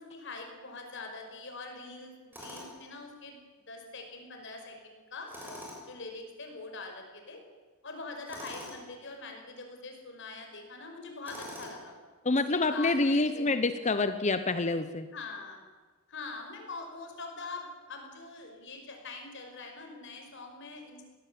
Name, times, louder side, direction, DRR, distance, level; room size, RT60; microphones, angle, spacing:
voice 1, 0.0-3.4 3.7-7.4 7.8-11.9 12.5-13.5 15.1-15.6 16.1-21.0, left 3 dB, 60° left, 3 dB, 5.5 m, -43 dB
Tools, 2.3-2.9 5.3-6.0 8.3-8.8 11.2-11.9, equal, 10° right, 6.7 m, -44 dB
voice 2, 12.2-15.1, left 3 dB, 35° left, 10 dB, 0.9 m, -27 dB
21.0 x 18.0 x 8.7 m, 1.3 s
head